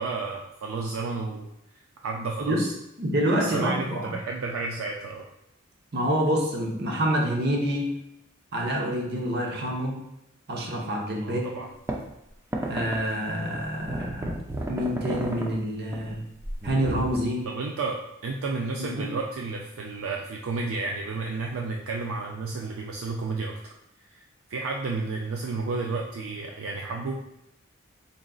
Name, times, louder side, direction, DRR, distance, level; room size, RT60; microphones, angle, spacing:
voice 1, 0.0-1.5 2.0-2.7 3.4-5.3 11.2-11.7 17.4-23.5 24.1-27.2, right 3 dB, 75° right, 0 dB, 0.4 m, -32 dB
voice 2, 3.0-4.1 5.9-7.9 8.5-10.0 10.5-11.5 12.7-14.4 14.7-16.2 16.6-17.4 19.0-19.1, equal, 55° right, 0 dB, 0.8 m, -27 dB
sound 1, 11.9-12.0 12.5-13.0 13.5-15.6 15.9-16.1 16.4-17.2, right 1 dB, 15° right, 0.4 m, -32 dB
4.0 x 3.7 x 2.3 m, 0.85 s
head